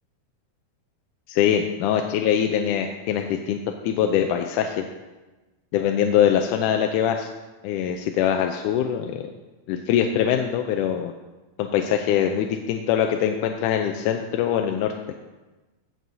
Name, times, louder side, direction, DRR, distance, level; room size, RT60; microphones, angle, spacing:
voice 1, 1.3-3.6 3.8-4.8 5.7-7.3 7.6-9.2 9.7-11.1 11.6-14.9, left 9 dB, 80° left, 4 dB, 2.0 m, -23 dB
17.0 x 7.6 x 2.7 m, 1.2 s
omnidirectional pair, 3.7 m